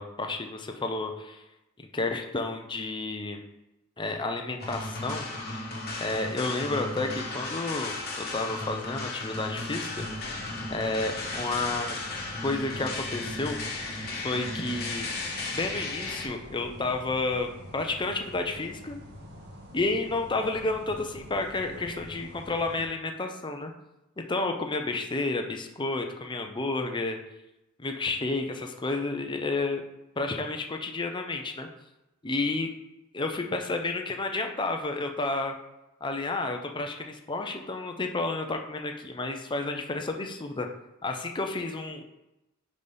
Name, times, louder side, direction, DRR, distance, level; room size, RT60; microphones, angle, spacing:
voice 1, 0.0-1.4 1.9-3.4 4.0-5.3 6.0-10.1 10.7-12.0 12.4-13.6 14.2-15.1 15.5-19.0 19.7-23.7 24.2-27.2 27.8-29.8 30.2-31.7 32.2-32.7 33.1-35.5 36.0-40.7 41.0-42.0, left 2 dB, 20° left, 4 dB, 0.6 m, -31 dB
sound 1, 4.6-16.3, left 2 dB, 50° left, 1.3 m, -35 dB
sound 2, 9.9-22.8, equal, 50° right, 1.6 m, -46 dB
5.1 x 4.0 x 5.4 m, 0.93 s
head